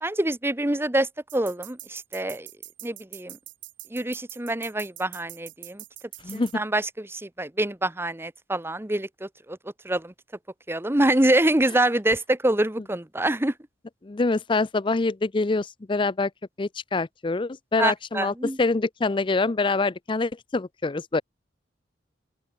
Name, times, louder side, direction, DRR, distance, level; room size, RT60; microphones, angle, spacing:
voice 1, 0.0-2.5 2.8-3.4 3.9-5.8 6.3-9.6 9.8-10.1 10.7-13.5 17.8-18.6, right 1 dB, 15° right, 1.0 m, -25 dB
sound 1, 1.3-6.5, right 17 dB, 90° right, 4.9 m, -43 dB
voice 2, 14.0-16.3 16.6-21.2, left 3 dB, 25° left, 0.5 m, -25 dB
open air
head